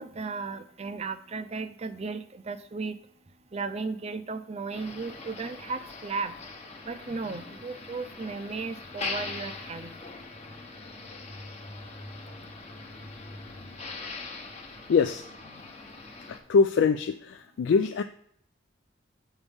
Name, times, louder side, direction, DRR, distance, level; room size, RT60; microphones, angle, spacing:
voice 1, 0.0-3.0 3.3-6.4 6.8-10.1, right 4 dB, 35° right, 11 dB, 0.5 m, -35 dB
Motor vehicle (road), 4.7-16.4, left 3 dB, 35° left, 1.0 m, -41 dB
voice 2, 14.9-15.2 16.3-18.0, left 5 dB, 70° left, 9 dB, 0.3 m, -23 dB
8.1 x 5.3 x 3.5 m, 0.68 s
head